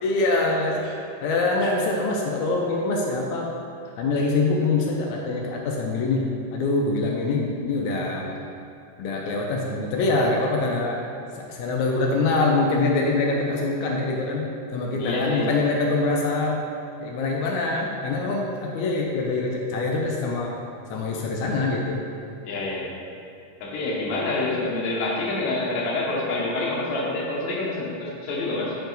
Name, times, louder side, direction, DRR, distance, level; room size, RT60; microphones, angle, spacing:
voice 1, 0.0-3.5 4.0-8.3 9.0-11.0 11.3-16.6 17.0-20.6 20.9-22.0, left 3 dB, 90° left, -1 dB, 1.6 m, -24 dB
voice 2, 15.0-15.5 22.4-22.9 23.6-28.8, left 2 dB, 70° left, -3 dB, 1.8 m, -27 dB
5.5 x 4.6 x 3.9 m, 2.5 s
omnidirectional pair, 4.0 m